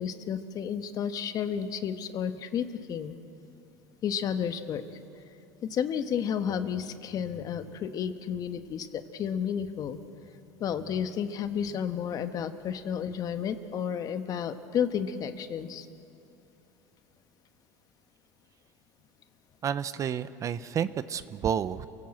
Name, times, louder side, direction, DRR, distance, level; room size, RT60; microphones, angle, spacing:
voice 1, 0.0-3.1 4.0-5.0 5.6-10.0 10.6-15.9, left 8 dB, 45° left, 9 dB, 1.4 m, -32 dB
voice 2, 19.6-21.9, right 8 dB, 35° right, 14 dB, 0.8 m, -30 dB
28.5 x 18.0 x 7.8 m, 2.7 s
supercardioid pair, 105°, 9 cm